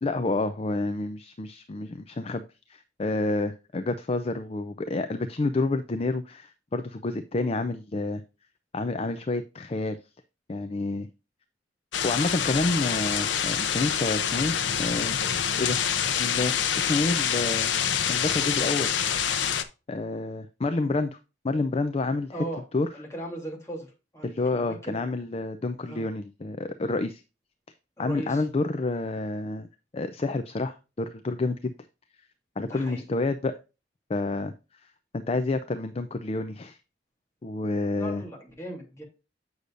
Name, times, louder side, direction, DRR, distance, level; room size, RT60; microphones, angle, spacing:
voice 1, 0.0-2.4 2.7-8.2 8.7-10.0 10.5-11.1 12.0-15.2 15.6-15.8 16.1-17.7 18.1-18.9 19.9-21.2 21.4-22.4 22.7-22.9 24.2-27.2 28.0-29.7 29.9-31.7 32.6-33.5 34.1-34.5 35.1-36.8 37.4-38.2, left 2 dB, 35° left, 10 dB, 0.5 m, -29 dB
sound 1, 11.9-19.6, left 8 dB, 90° left, 0.7 m, -26 dB
voice 2, 22.3-22.6 22.9-25.0 25.8-26.0 28.0-28.4 32.6-33.0 37.9-39.0, right 1 dB, 15° left, -1 dB, 2.9 m, -38 dB
8.3 x 6.5 x 2.5 m, 0.29 s
head